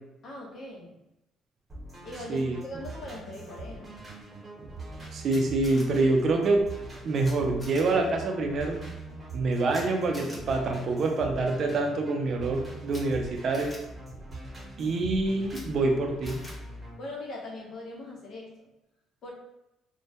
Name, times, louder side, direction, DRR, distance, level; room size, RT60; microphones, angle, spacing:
voice 1, 0.2-0.9 2.0-4.0 17.0-18.5 19.2-19.3, left 2 dB, 55° left, -2 dB, 0.7 m, -40 dB
sound 1, 1.7-16.9, right 2 dB, 15° right, 1.0 m, -42 dB
voice 2, 5.1-6.6 7.0-8.8 9.3-13.7 14.8-16.4, right 3 dB, 50° right, 2 dB, 0.4 m, -26 dB
Camera, 5.3-5.8 7.2-7.3 7.6-7.8 9.7-9.8 10.1-10.4 12.9-13.0 13.5-13.8 15.5-15.6 16.2-16.5, left 1 dB, 20° left, 0.7 m, -45 dB
2.1 x 2.1 x 2.7 m, 0.90 s
cardioid pair, 110°, 0 cm